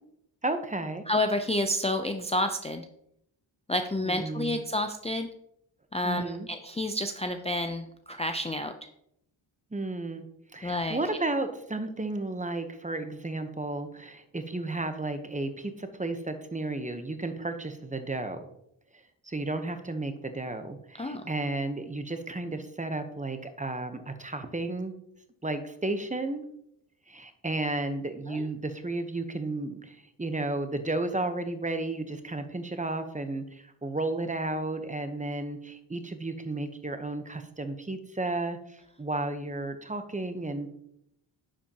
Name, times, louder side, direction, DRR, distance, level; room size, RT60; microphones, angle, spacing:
voice 1, 0.4-1.0 4.0-4.6 6.0-6.5 9.7-10.2 10.5-18.5 19.2-24.9 25.4-26.4 27.1-40.7, right 2 dB, 15° right, 8 dB, 0.9 m, -33 dB
voice 2, 1.1-2.9 3.7-5.3 5.9-8.7 10.6-11.0 21.0-21.2 28.3-28.5, left 1 dB, 15° left, 6 dB, 0.5 m, -29 dB
10.0 x 7.5 x 2.9 m, 0.77 s
cardioid pair, 90°, 47 cm